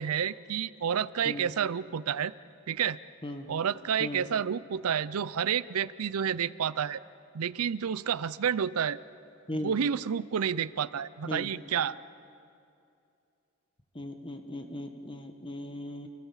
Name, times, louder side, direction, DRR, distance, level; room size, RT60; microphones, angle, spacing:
voice 1, 0.0-2.3 2.7-3.0 3.5-7.0 7.3-9.0 9.5-12.0, right 8 dB, 75° right, 18 dB, 0.5 m, -30 dB
voice 2, 13.9-16.1, left 1 dB, 25° left, 6 dB, 1.5 m, -38 dB
28.0 x 16.5 x 7.3 m, 2.6 s
head